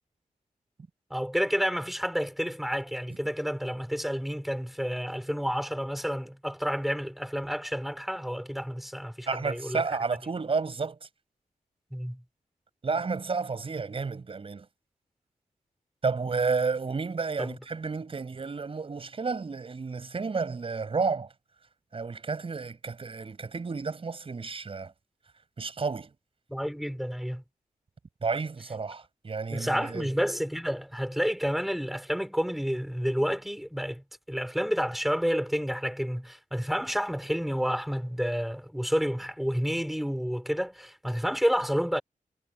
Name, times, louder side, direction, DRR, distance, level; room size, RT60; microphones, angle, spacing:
voice 1, 1.1-9.8 11.9-12.2 17.4-17.6 26.5-27.4 29.5-42.0, equal, ahead, 5.9 m, -30 dB
voice 2, 9.3-11.1 12.8-14.7 16.0-21.3 21.9-24.9 25.6-26.1 28.2-30.1, right 4 dB, 40° right, 6.6 m, -31 dB
wide cardioid pair, 155°, 15 cm